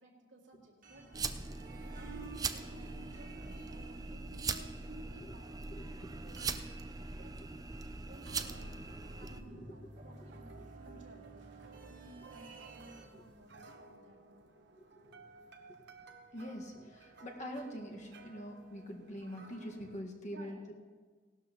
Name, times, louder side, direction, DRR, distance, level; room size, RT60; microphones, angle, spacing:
voice 1, 0.0-5.6 6.2-6.8 7.1-7.4 8.1-14.5 16.5-16.6 20.3-20.6, right 1 dB, 85° right, -2 dB, 2.4 m, -57 dB
sound 1, 0.8-13.0, right 4 dB, 45° right, 1.8 m, -55 dB
sound 2, 1.0-20.0, right 2 dB, 65° right, 0.9 m, -57 dB
sound 3, 1.1-9.4, right 4 dB, 20° right, 0.4 m, -41 dB
voice 2, 5.7-6.3 7.4-7.5 7.9-8.0 9.1-9.8 10.2-10.3 10.6-10.7 13.1-13.2 15.0-15.2 16.3-20.7, equal, 40° left, 0 dB, 1.6 m, -45 dB
18.0 x 12.0 x 3.0 m, 1.5 s
head